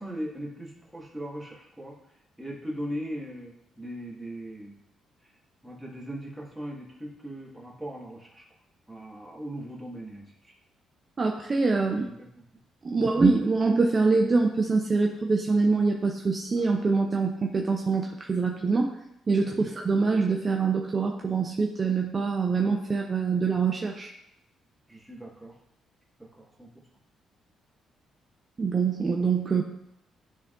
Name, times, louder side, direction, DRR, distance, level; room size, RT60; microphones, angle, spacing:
voice 1, 0.0-2.0 2.4-4.7 5.6-8.4 8.9-10.5 12.0-12.4 12.9-13.1 19.4-19.6 24.9-25.5 26.2-26.7, equal, 5° right, -4 dB, 1.7 m, -39 dB
voice 2, 11.2-12.1 12.8-19.0 19.3-24.1 28.6-29.6, right 4 dB, 35° right, 2 dB, 0.5 m, -24 dB
10.5 x 3.6 x 2.5 m, 0.79 s
cardioid pair, 90°, 0 cm